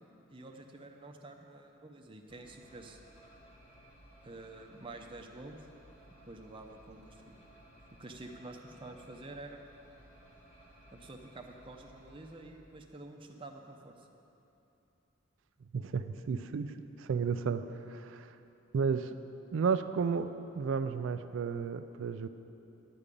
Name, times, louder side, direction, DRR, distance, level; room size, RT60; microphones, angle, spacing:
voice 1, 0.3-3.0 4.2-5.6 6.3-7.3 8.0-9.6 10.9-14.1, right 2 dB, 25° right, 3 dB, 0.6 m, -48 dB
sound 1, 2.3-12.5, right 1 dB, 30° left, 1.7 m, -58 dB
voice 2, 15.7-17.6 17.9-18.3 18.7-19.1 19.5-22.3, right 5 dB, 65° right, 10 dB, 0.3 m, -32 dB
11.0 x 5.1 x 8.4 m, 2.9 s
head